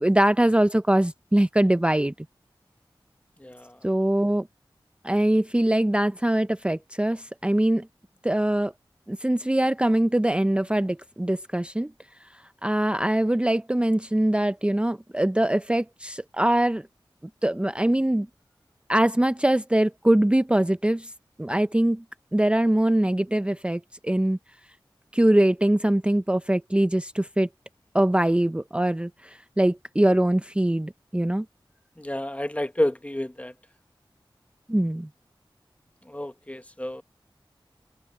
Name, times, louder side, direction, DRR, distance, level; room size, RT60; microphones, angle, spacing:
voice 1, 0.0-2.1 3.8-4.5 5.0-7.9 8.2-8.7 9.1-11.9 12.2-16.9 17.4-18.3 18.9-21.1 21.4-22.0 22.3-24.4 25.1-27.5 27.9-31.5 34.7-35.1, right 1 dB, 10° right, 0.5 m, -23 dB
voice 2, 32.0-33.5 36.1-37.0, left 1 dB, 15° left, 0.9 m, -29 dB
wide cardioid pair, 45°, 9 cm